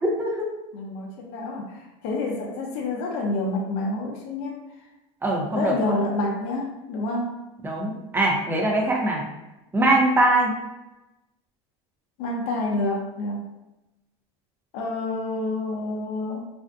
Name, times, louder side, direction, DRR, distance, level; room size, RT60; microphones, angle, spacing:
voice 1, 0.0-0.5 5.2-6.0 7.6-9.2 9.7-10.5, right 1 dB, 15° right, -1 dB, 0.6 m, -22 dB
voice 2, 0.7-4.6 5.5-7.4 12.2-13.4 14.7-16.4, left 2 dB, 60° left, 0 dB, 0.6 m, -28 dB
2.5 x 2.1 x 2.5 m, 0.98 s
supercardioid pair, 115°, 14 cm